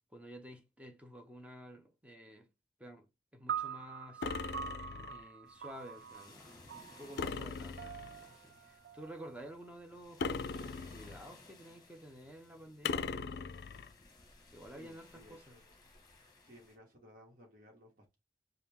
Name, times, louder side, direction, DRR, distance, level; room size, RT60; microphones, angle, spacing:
voice 1, 0.1-2.5 2.8-3.1 3.3-4.3 5.1-13.5 14.5-15.6, equal, 5° right, 0.7 m, -52 dB
sound 1, 3.5-9.9, right 8 dB, 70° right, 0.3 m, -45 dB
sound 2, 4.2-5.3 7.2-8.2 10.2-11.3 12.8-13.9, left 5 dB, 60° left, 0.4 m, -39 dB
sound 3, 5.5-16.8, left 2 dB, 20° left, 1.2 m, -60 dB
voice 2, 14.7-15.6 16.4-18.2, equal, 50° right, 1.3 m, -59 dB
5.0 x 2.3 x 3.5 m
head